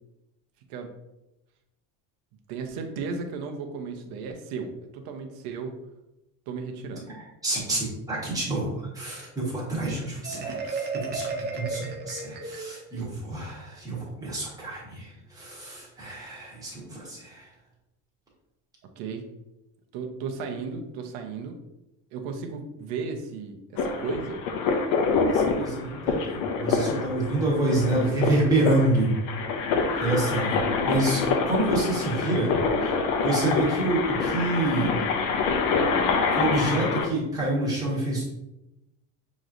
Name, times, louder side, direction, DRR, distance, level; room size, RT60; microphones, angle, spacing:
voice 1, 2.5-5.8 6.5-7.1 10.3-10.8 13.0-13.1 19.0-19.2 19.9-21.6 22.1-24.4, right 5 dB, 70° right, 4 dB, 0.8 m, -35 dB
voice 2, 7.4-17.5 25.3-29.1 30.0-32.5 32.8-32.9 33.2-34.9 36.3-38.3, right 2 dB, 10° right, -5 dB, 1.3 m, -27 dB
Marimba xylophone, 10.2-13.0, right 3 dB, 30° right, 0.4 m, -33 dB
sound 1, 23.8-37.1, left 4 dB, 60° left, 0.7 m, -26 dB
6.4 x 3.1 x 2.5 m, 0.92 s
cardioid pair, 160°, 37 cm